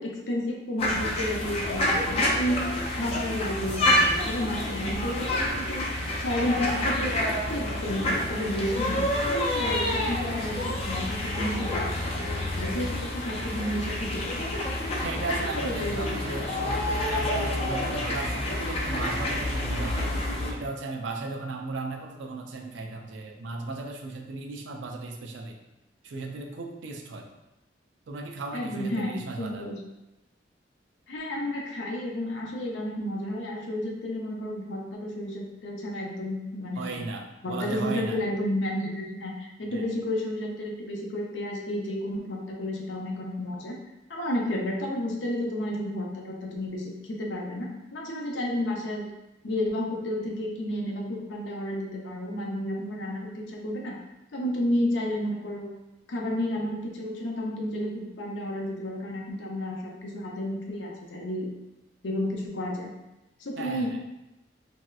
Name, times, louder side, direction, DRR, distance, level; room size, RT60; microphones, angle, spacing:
voice 1, 0.0-2.7 3.0-14.5 15.5-16.0 16.5-16.6 28.5-29.8 31.1-37.1 37.4-43.8 44.1-49.1 49.4-53.9 54.3-55.7 56.1-61.5 62.0-62.9 63.4-64.0, left 1 dB, 85° left, -1 dB, 0.6 m, -31 dB
sound 1, 0.8-20.5, left 1 dB, 35° left, 0.4 m, -28 dB
voice 2, 15.0-20.1 20.5-25.6 26.0-27.4 28.1-29.7 36.8-38.2 39.7-39.9 63.6-64.0, right 3 dB, 85° right, 2 dB, 0.4 m, -36 dB
3.2 x 2.7 x 2.3 m, 0.95 s
head